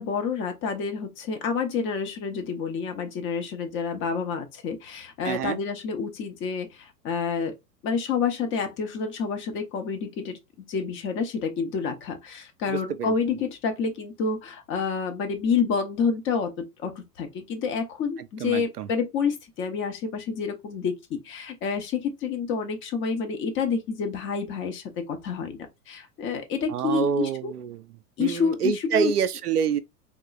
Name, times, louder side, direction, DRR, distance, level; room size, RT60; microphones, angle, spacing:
voice 1, 0.0-7.5 7.8-25.6 25.9-27.5 28.2-29.1, left 5 dB, 25° left, 0.8 m, -28 dB
voice 2, 5.3-5.6 12.7-13.1 18.4-18.9 26.7-27.8 28.2-29.8, right 7 dB, 70° right, 0.6 m, -26 dB
3.7 x 3.1 x 2.3 m
figure-of-eight pair, 95°, 47 cm